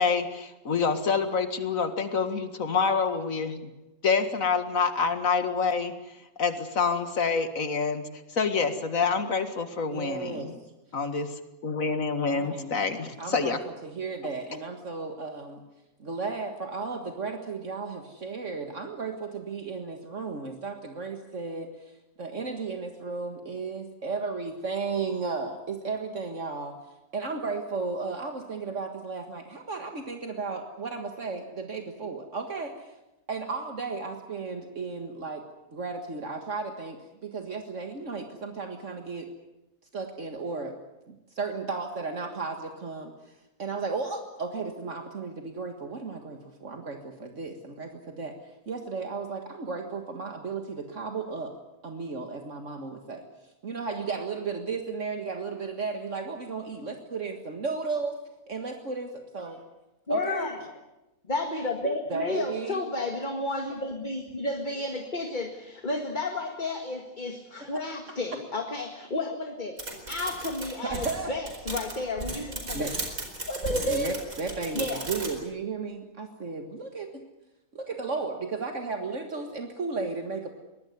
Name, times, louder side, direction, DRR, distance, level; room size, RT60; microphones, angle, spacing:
voice 1, 0.0-3.7 4.0-5.9 6.4-10.6 10.9-11.3 11.6-13.6, left 5 dB, 70° left, 9 dB, 2.3 m, -27 dB
voice 2, 9.9-10.5 12.2-12.7 13.2-15.6 16.0-21.9 22.2-26.8 27.1-32.9 33.3-35.4 35.7-39.3 39.9-40.8 41.1-43.3 43.6-48.4 48.7-51.5 51.8-53.3 53.6-58.2 58.5-59.6 60.1-60.5 62.1-62.8 67.6-67.8 70.8-71.3 72.7-73.0 73.8-77.1 77.7-80.5, right 4 dB, 60° right, 5 dB, 2.1 m, -34 dB
voice 3, 60.1-60.6 61.3-69.8 70.1-72.8 73.5-74.2 74.7-75.1, left 2 dB, 35° left, 4 dB, 2.0 m, -31 dB
sound 1, 69.8-75.4, right 2 dB, 80° right, 5.1 m, -35 dB
23.5 x 19.0 x 9.5 m, 0.99 s
omnidirectional pair, 1.5 m